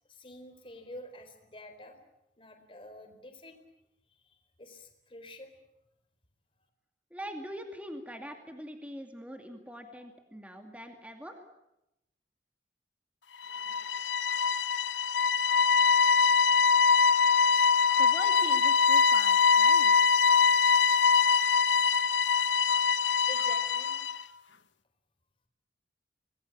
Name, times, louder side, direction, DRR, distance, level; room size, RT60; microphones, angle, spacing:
voice 1, 0.1-2.0 2.4-3.6 4.2-5.5 23.3-24.1, left 1 dB, 30° left, 6 dB, 4.2 m, -48 dB
voice 2, 7.1-11.5 18.0-20.1, equal, 10° right, 5 dB, 2.3 m, -43 dB
sound 1, 13.4-24.2, left 5 dB, 85° left, 1.1 m, -23 dB
27.0 x 20.5 x 8.5 m, 0.86 s
head